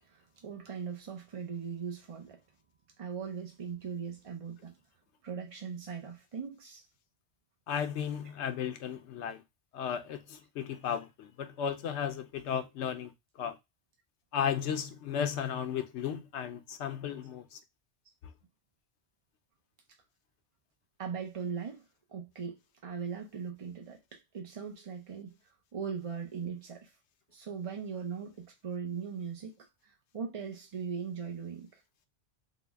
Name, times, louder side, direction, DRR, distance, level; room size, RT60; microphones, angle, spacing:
voice 1, 0.0-2.4 3.0-4.7 5.2-6.8 21.0-21.8 22.1-22.6 22.8-25.4 25.7-26.9 27.3-31.8, right 6 dB, 45° right, 0.4 m, -39 dB
voice 2, 7.7-9.4 9.7-13.1 13.4-13.6 14.3-17.6, left 8 dB, 75° left, 0.9 m, -34 dB
3.8 x 2.1 x 3.3 m
omnidirectional pair, 1.2 m